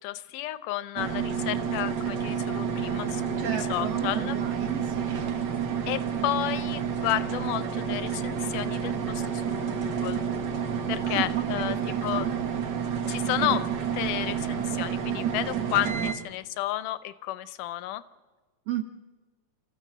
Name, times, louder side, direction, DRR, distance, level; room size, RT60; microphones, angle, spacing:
voice 1, 0.0-4.4 5.9-10.3 10.9-11.8 12.0-12.3 13.1-13.7 13.9-18.0, left 15 dB, 85° left, 14 dB, 2.3 m, -32 dB
sound 1, 1.0-16.1, right 7 dB, 80° right, 0.9 m, -29 dB
voice 2, 3.4-5.2 11.0-12.3 18.7-18.8, right 10 dB, 60° right, 6 dB, 1.8 m, -34 dB
28.5 x 14.5 x 7.5 m, 1.3 s
omnidirectional pair, 3.7 m